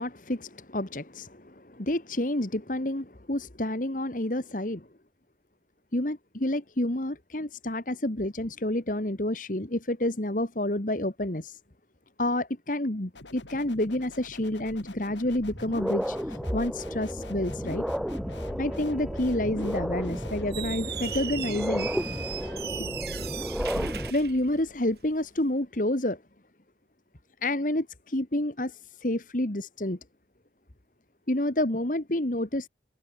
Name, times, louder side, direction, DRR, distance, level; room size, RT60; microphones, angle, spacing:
voice 1, 0.0-4.9 5.9-11.6 12.2-17.8 18.6-21.9 22.8-22.9 24.1-26.2 27.4-30.0 31.3-32.7, left 1 dB, 45° left, 1.8 m, -29 dB
sound 1, 13.1-23.4, left 2 dB, 85° left, 4.0 m, -47 dB
sound 2, 14.7-14.8 15.3-24.1, equal, ahead, 0.9 m, -33 dB
Squeak, 20.4-25.1, right 7 dB, 60° right, 5.4 m, -37 dB
head